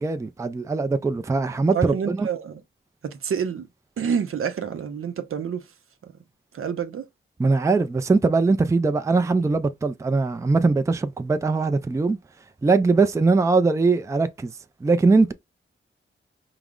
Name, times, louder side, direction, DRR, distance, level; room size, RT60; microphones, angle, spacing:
voice 1, 0.0-2.3 7.4-12.2 12.6-14.5 14.8-15.3, right 3 dB, 15° right, 0.3 m, -21 dB
voice 2, 1.7-2.6 3.0-3.7 4.0-5.6 6.0-6.1 6.5-7.0, right 7 dB, 80° right, 0.7 m, -28 dB
4.8 x 2.0 x 3.6 m
wide cardioid pair, 120°, 21 cm